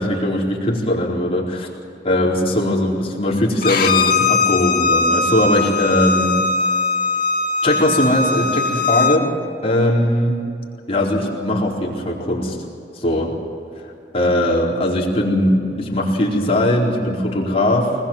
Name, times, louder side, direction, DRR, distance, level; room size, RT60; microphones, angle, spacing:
voice 1, 0.0-1.7 2.0-6.4 7.6-9.3 9.6-10.4 10.9-12.6 12.9-13.3 14.1-18.0, left 1 dB, 35° left, -3 dB, 4.4 m, -19 dB
Bowed string instrument, 3.6-9.2, left 4 dB, 55° left, 1.9 m, -19 dB
24.0 x 21.0 x 7.4 m, 2.5 s
head